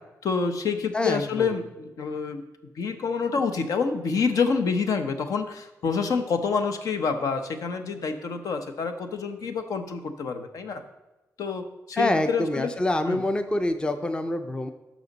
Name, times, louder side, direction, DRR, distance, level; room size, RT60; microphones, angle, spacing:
voice 1, 0.2-2.4 2.8-10.8 11.4-12.7 13.1-13.2, left 5 dB, 70° left, 8 dB, 0.8 m, -27 dB
voice 2, 0.9-1.6 11.9-14.7, left 1 dB, 15° left, 9 dB, 0.5 m, -26 dB
11.0 x 6.2 x 4.0 m, 1.1 s
wide cardioid pair, 125°, 6 cm